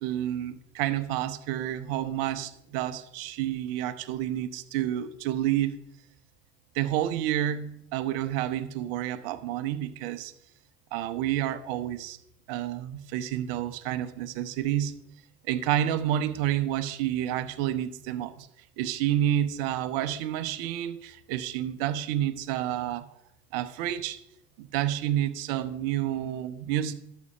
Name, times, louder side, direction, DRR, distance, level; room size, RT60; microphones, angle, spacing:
voice 1, 0.0-5.8 6.7-10.3 10.9-12.2 12.5-15.0 15.5-18.5 18.8-23.1 23.5-24.2 24.6-26.9, right 12 dB, 65° right, 12 dB, 0.9 m, -29 dB
12.0 x 5.5 x 5.0 m, 0.76 s
hypercardioid pair, 75°, 32 cm